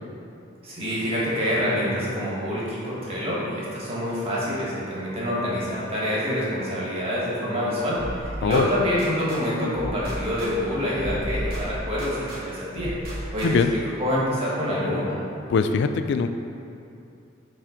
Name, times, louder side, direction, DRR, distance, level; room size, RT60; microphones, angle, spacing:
voice 1, 0.6-13.6 14.0-15.2, equal, 30° right, -7 dB, 1.5 m, -26 dB
sound 1, 8.0-9.4 9.7-12.4 12.8-13.8, equal, 50° right, 1.3 m, -34 dB
voice 2, 13.4-13.7 15.5-16.3, left 5 dB, 65° left, 9 dB, 0.3 m, -22 dB
5.6 x 3.5 x 5.0 m, 2.7 s
head